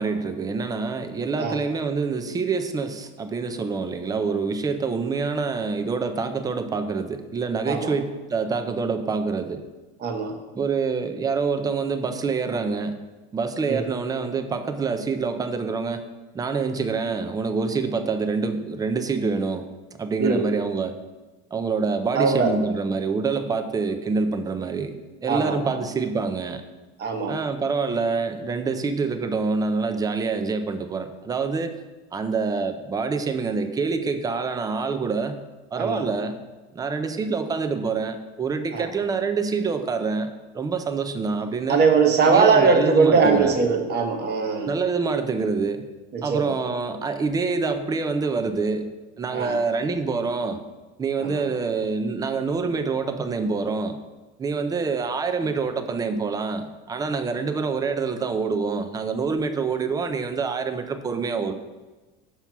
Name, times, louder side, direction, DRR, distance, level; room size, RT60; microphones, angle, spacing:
voice 1, 0.0-9.6 10.5-13.0 13.3-16.0 16.3-19.7 20.0-21.0 21.5-24.9 25.2-26.6 27.3-31.8 32.1-35.4 35.7-36.4 36.7-41.8 42.2-43.6 44.6-45.8 46.2-48.9 49.2-50.6 51.0-54.0 54.4-61.5, right 4 dB, 10° right, 8 dB, 0.4 m, -26 dB
voice 2, 10.0-10.3 13.7-13.9 20.2-20.4 22.2-22.5 25.3-25.6 27.0-27.4 35.8-36.0 38.7-38.9 41.7-44.7 46.1-46.5 49.3-49.6 51.2-51.4, right 5 dB, 30° right, 5 dB, 1.0 m, -20 dB
6.0 x 5.6 x 4.6 m, 1.2 s
supercardioid pair, 135°, 32 cm